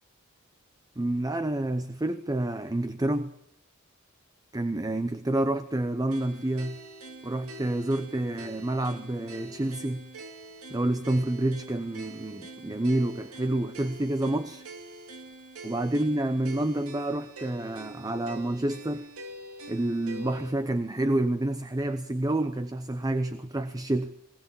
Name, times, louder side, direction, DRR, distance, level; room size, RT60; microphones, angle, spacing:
voice 1, 1.0-3.3 4.5-6.8 7.2-10.1 10.7-14.6 15.6-19.1 19.7-24.1, right 1 dB, 15° right, 11 dB, 0.7 m, -28 dB
sound 1, 6.1-20.5, right 2 dB, 85° right, 2.6 m, -45 dB
20.0 x 18.5 x 7.1 m, 0.77 s
head